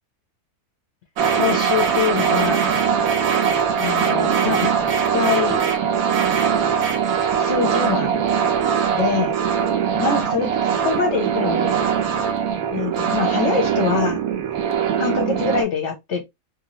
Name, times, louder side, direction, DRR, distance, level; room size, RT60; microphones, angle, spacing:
sound 1, 1.2-15.6, right 7 dB, 75° right, 1.1 m, -21 dB
voice 1, 1.4-2.7 3.8-4.7 5.1-5.6 7.4-8.2 9.0-9.3 10.0-11.8 12.7-14.2 15.0-16.2, left 6 dB, 60° left, 0.9 m, -24 dB
2.9 x 2.6 x 2.8 m
omnidirectional pair, 1.5 m